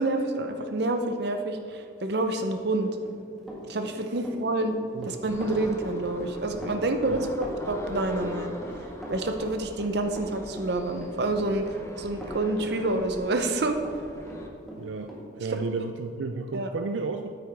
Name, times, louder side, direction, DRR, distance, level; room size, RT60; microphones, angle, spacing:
voice 1, 0.0-2.9 3.7-4.7 5.1-8.5 9.1-11.6 12.0-13.8 15.5-15.6 16.5-16.7, right 2 dB, 60° right, 6 dB, 0.7 m, -28 dB
Run, 2.8-14.0 14.3-15.2, equal, ahead, 1.6 m, -41 dB
voice 2, 4.9-5.4 7.1-7.3 14.8-17.3, right 4 dB, 90° right, 6 dB, 0.4 m, -33 dB
sound 1, 5.3-14.5, left 1 dB, 15° left, 0.7 m, -41 dB
9.3 x 8.7 x 3.5 m, 2.5 s
head